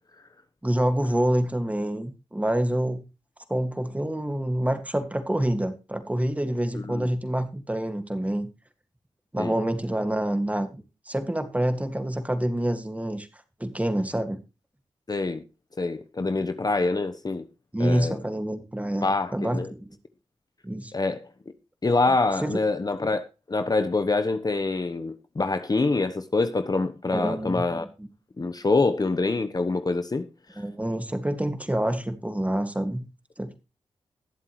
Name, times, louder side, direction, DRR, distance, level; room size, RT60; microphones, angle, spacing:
voice 1, 0.6-3.0 3.5-8.5 9.3-10.8 11.1-13.3 13.6-14.4 17.7-19.9 20.6-20.9 22.4-22.5 27.1-27.7 28.0-28.1 30.6-33.0 33.4-33.6, right 1 dB, 10° right, 2.0 m, -27 dB
voice 2, 6.7-7.1 9.4-9.5 15.1-15.4 15.8-17.4 17.8-18.2 19.0-19.7 20.9-21.3 21.8-27.8 28.4-30.3, left 3 dB, 35° left, 1.0 m, -25 dB
20.5 x 7.5 x 3.2 m
cardioid pair, 55°, 11 cm